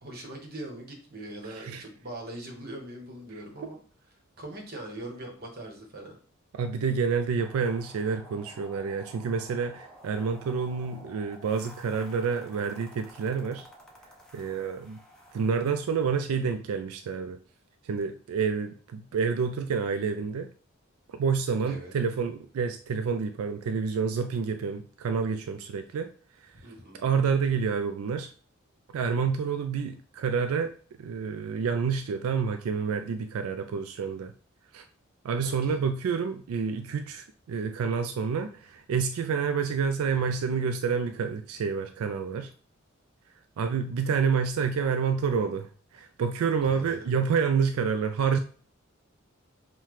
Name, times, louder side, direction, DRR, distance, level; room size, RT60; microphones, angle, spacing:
voice 1, 0.0-3.8 4.4-6.2 21.7-21.9 26.5-27.0 35.4-35.8 46.6-47.0, right 1 dB, 45° right, 0 dB, 1.1 m, -41 dB
voice 2, 1.4-1.8 3.6-3.7 6.5-13.7 14.3-15.0 15.3-17.4 17.8-20.5 21.1-26.1 26.9-28.3 28.9-34.3 34.7-34.9 35.2-42.5 43.6-48.4, right 6 dB, 90° right, 8 dB, 0.3 m, -28 dB
sound 1, 7.4-16.1, equal, 5° left, 0.7 m, -51 dB
5.6 x 2.2 x 3.1 m, 0.42 s
head